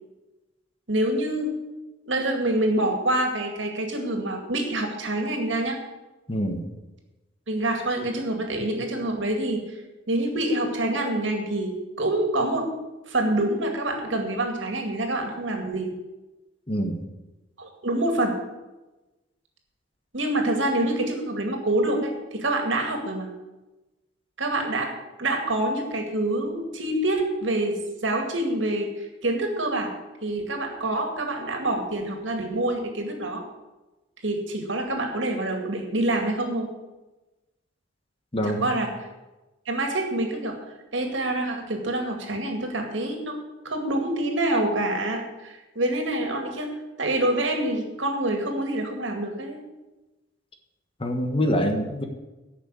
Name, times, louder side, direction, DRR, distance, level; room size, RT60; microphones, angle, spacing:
voice 1, 0.9-1.5 2.1-5.8 7.5-9.6 10.1-12.7 13.1-15.9 17.6-18.4 20.1-23.3 24.4-24.9 25.2-29.9 30.2-33.4 34.2-36.7 38.4-38.9 39.7-40.6 40.9-43.4 43.6-46.7 47.0-49.6, right 1 dB, 70° right, 4 dB, 2.2 m, -26 dB
voice 2, 6.3-6.7 16.7-17.0 38.3-38.7 51.0-52.0, equal, 30° left, 4 dB, 1.3 m, -25 dB
10.5 x 6.4 x 8.4 m, 1.1 s
head